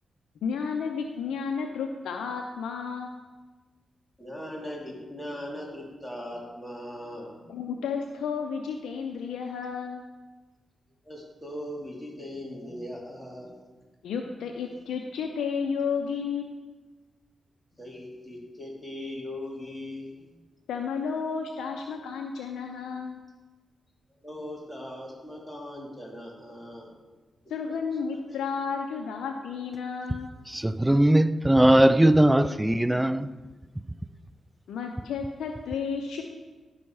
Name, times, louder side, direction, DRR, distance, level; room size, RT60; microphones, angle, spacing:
voice 1, 0.4-3.1 7.5-10.0 14.0-16.6 20.7-23.2 27.5-30.3 34.7-36.2, left 6 dB, 85° left, 0.6 m, -32 dB
voice 2, 4.2-7.8 11.0-13.6 17.7-20.3 24.2-26.9 27.7-27.8 28.3-28.4, left 1 dB, 10° left, 2.9 m, -39 dB
voice 3, 30.5-33.3, right 1 dB, 10° right, 0.3 m, -20 dB
11.0 x 5.4 x 4.7 m
cardioid pair, 55°, 0 cm